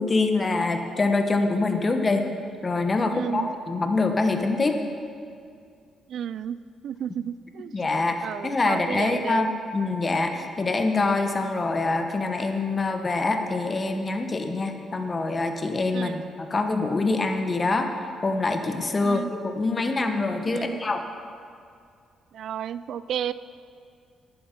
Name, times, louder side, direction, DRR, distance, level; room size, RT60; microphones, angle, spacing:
voice 1, 0.0-2.2 2.6-4.8 7.7-17.9 18.2-21.0, left 3 dB, 30° left, 6 dB, 1.1 m, -25 dB
voice 2, 3.1-3.5 6.1-6.6 6.8-7.7 8.2-9.5 15.9-16.2 19.0-19.3 20.5-20.8 22.3-23.3, right 9 dB, 70° right, 16 dB, 0.3 m, -32 dB
11.0 x 9.5 x 5.2 m, 2.3 s
cardioid pair, 90°, 0 cm